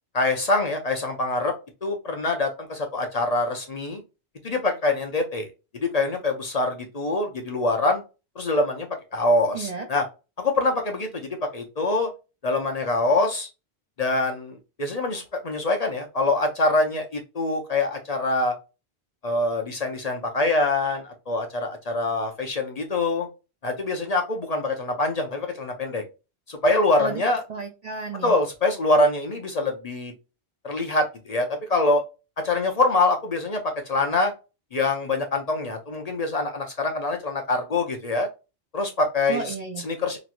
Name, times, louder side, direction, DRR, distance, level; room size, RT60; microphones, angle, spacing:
voice 1, 0.1-1.5 1.8-4.0 4.4-5.5 5.9-8.0 8.4-10.0 10.4-12.1 12.4-13.5 14.0-18.5 19.2-23.3 23.6-26.0 26.5-27.4 28.2-30.1 30.6-32.0 32.4-34.3 34.7-38.3 38.7-39.5 39.8-40.2, left 2 dB, 45° left, 0.6 m, -24 dB
voice 2, 9.5-9.9 27.0-27.2 27.5-28.4 39.3-39.9, right 4 dB, 50° right, 0.5 m, -32 dB
3.0 x 3.0 x 2.4 m
omnidirectional pair, 1.1 m